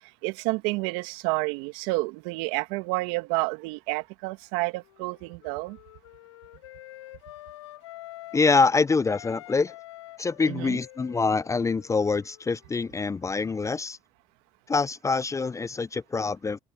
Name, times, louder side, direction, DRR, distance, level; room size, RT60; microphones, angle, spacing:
voice 1, 0.2-5.8 10.5-10.8, right 24 dB, 75° right, 2.1 m, -29 dB
Wind instrument woodwind instrument, 4.2-8.7 9.0-13.5, left 16 dB, 85° left, 7.0 m, -48 dB
voice 2, 8.3-9.7 10.2-14.0 14.7-16.6, left 4 dB, 20° left, 0.5 m, -25 dB
hypercardioid pair, 70°, 15 cm